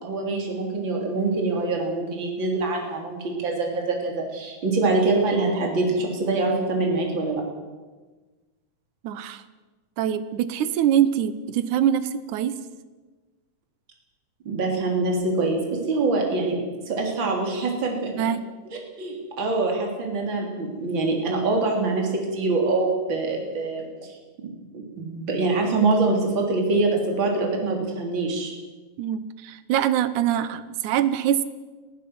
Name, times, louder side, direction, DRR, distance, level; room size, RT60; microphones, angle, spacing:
voice 1, 0.0-7.4 14.5-18.3 18.7-24.2 24.7-28.5, right 3 dB, 40° right, 1 dB, 4.0 m, -24 dB
voice 2, 9.0-9.4 10.0-12.6 18.2-18.5 29.0-31.4, right 10 dB, 85° right, 13 dB, 2.4 m, -24 dB
22.0 x 15.5 x 7.7 m, 1.3 s
omnidirectional pair, 3.4 m